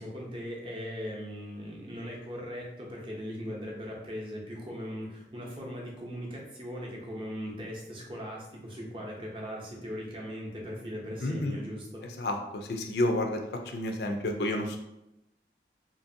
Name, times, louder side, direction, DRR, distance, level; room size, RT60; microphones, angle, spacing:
voice 1, 0.0-12.0, equal, 30° right, -2 dB, 0.6 m, -39 dB
voice 2, 11.2-11.6 12.2-13.4 13.7-14.8, left 1 dB, 65° left, 4 dB, 0.4 m, -30 dB
2.7 x 2.6 x 2.6 m, 0.87 s
head